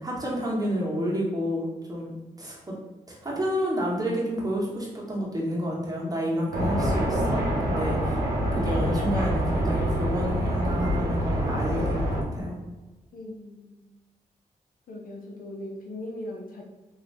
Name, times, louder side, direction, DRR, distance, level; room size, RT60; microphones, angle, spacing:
voice 1, 0.0-2.1 2.4-2.7 3.1-7.4 7.7-8.2 8.5-12.6, equal, 25° right, -4 dB, 1.3 m, -29 dB
sound 1, 6.5-12.2, equal, 90° right, 0.7 m, -26 dB
voice 2, 13.1-13.8 14.9-16.6, left 1 dB, 70° left, 0 dB, 0.6 m, -39 dB
2.8 x 2.7 x 3.3 m, 1.2 s
supercardioid pair, 45°, 15 cm